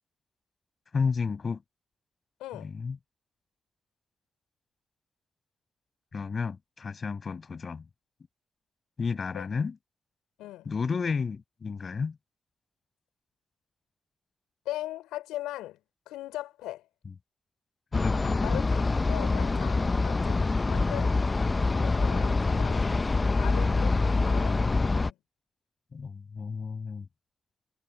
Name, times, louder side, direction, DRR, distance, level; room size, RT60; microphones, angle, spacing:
voice 1, 0.9-1.6 2.6-3.0 6.1-7.9 9.0-9.8 10.7-12.2 17.9-18.6 25.9-27.1, left 5 dB, 55° left, 6.9 m, -32 dB
voice 2, 2.4-2.7 9.3-9.5 10.4-10.7 14.6-15.8 16.1-16.9 18.4-21.2 21.7-22.9 23.3-24.6 24.9-25.2, left 15 dB, 90° left, 5.9 m, -39 dB
sound 1, 17.9-25.1, left 3 dB, 35° left, 0.7 m, -25 dB
hypercardioid pair, 40°, 0 cm